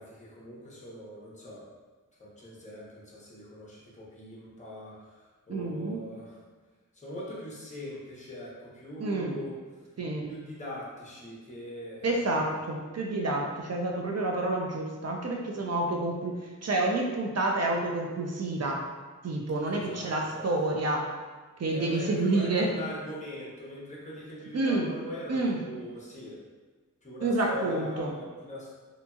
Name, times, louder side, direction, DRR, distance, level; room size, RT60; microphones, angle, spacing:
voice 1, 0.0-1.7 2.2-6.4 6.9-9.5 10.3-12.4 19.7-20.5 21.7-26.4 27.0-28.7, left 1 dB, 20° left, -6 dB, 0.8 m, -41 dB
voice 2, 5.5-6.0 9.0-9.4 10.0-10.3 12.0-18.9 19.2-21.1 21.6-22.7 24.5-24.9 25.3-25.6 27.2-28.1, right 2 dB, 50° right, 0 dB, 0.4 m, -29 dB
2.7 x 2.7 x 2.3 m, 1.3 s
wide cardioid pair, 80°, 33 cm